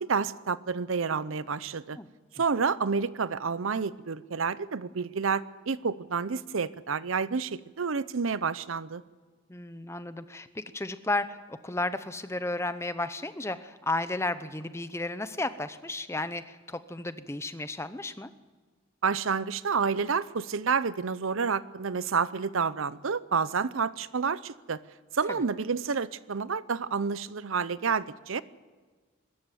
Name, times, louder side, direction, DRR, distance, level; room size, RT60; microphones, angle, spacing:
voice 1, 0.0-2.0 2.4-9.0 19.0-24.8 25.1-28.4, right 5 dB, 80° right, 17 dB, 0.7 m, -29 dB
voice 2, 9.5-18.3, left 2 dB, 15° left, 12 dB, 0.7 m, -33 dB
22.5 x 13.5 x 9.2 m, 1.4 s
head